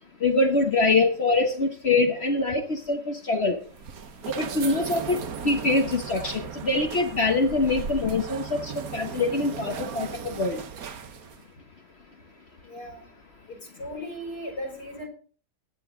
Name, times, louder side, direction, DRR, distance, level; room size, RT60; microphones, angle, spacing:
voice 1, 0.2-3.6 4.3-10.6, left 3 dB, 45° left, 6 dB, 1.2 m, -24 dB
sound 1, 3.6-11.5, right 7 dB, 60° right, 1.4 m, -37 dB
voice 2, 12.6-13.1 13.5-15.1, equal, 75° left, 3 dB, 4.3 m, -37 dB
16.0 x 10.5 x 3.8 m, 0.41 s
omnidirectional pair, 1.8 m